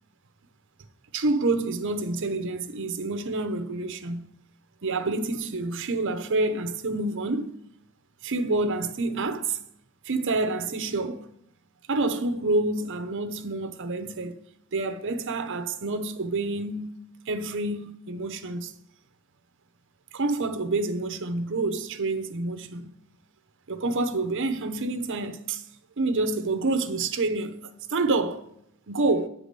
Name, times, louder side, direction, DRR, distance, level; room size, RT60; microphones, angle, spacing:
voice 1, 1.1-4.3 4.8-7.6 8.2-9.6 10.1-11.3 11.9-14.4 14.7-16.9 17.3-18.7 20.1-22.9 23.7-25.6 26.0-28.5 28.9-29.3, right 2 dB, 60° right, 0.8 m, -28 dB
9.5 x 4.9 x 6.6 m
head